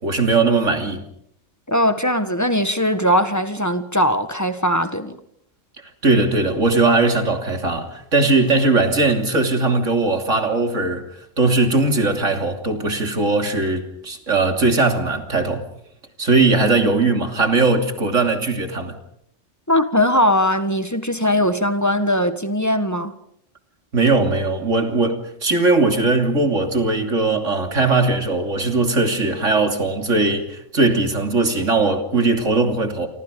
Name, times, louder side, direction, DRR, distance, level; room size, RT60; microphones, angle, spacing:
voice 1, 0.0-1.1 6.0-11.0 11.4-15.6 16.2-18.9 23.9-33.1, right 3 dB, 65° right, 3.3 m, -19 dB
voice 2, 1.7-5.2 19.7-23.1, left 1 dB, 15° left, 1.5 m, -20 dB
29.0 x 25.0 x 5.3 m
omnidirectional pair, 1.4 m